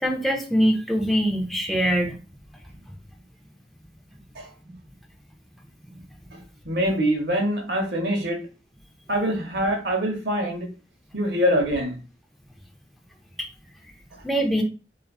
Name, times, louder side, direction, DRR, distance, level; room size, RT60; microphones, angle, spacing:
voice 1, 0.0-2.1 4.6-4.8 5.9-6.0 14.2-14.6, equal, ahead, 1 dB, 0.4 m, -23 dB
voice 2, 6.6-8.4 9.1-10.7 11.1-12.0, equal, 70° right, 2 dB, 0.8 m, -24 dB
2.4 x 2.3 x 2.3 m, 0.33 s
head